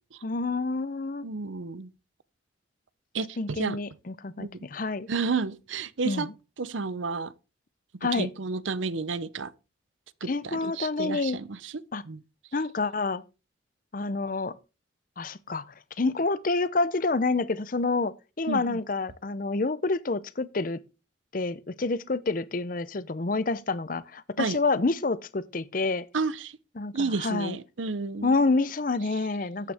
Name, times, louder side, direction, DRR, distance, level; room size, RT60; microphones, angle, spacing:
voice 1, 0.2-1.3 3.4-5.1 6.0-6.3 8.0-8.3 10.3-11.4 11.9-12.0 12.5-13.2 13.9-14.5 15.2-15.6 16.0-20.8 21.3-26.1 26.8-27.6 28.2-29.7, left 3 dB, 45° left, 0.6 m, -28 dB
voice 2, 1.2-1.9 3.1-3.8 4.4-4.6 5.1-6.3 6.6-7.3 8.1-9.5 10.2-11.7 12.1-12.2 18.5-18.8 24.4-24.6 26.1-26.6 26.9-28.3, right 4 dB, 85° right, 0.7 m, -31 dB
12.5 x 8.9 x 3.5 m
head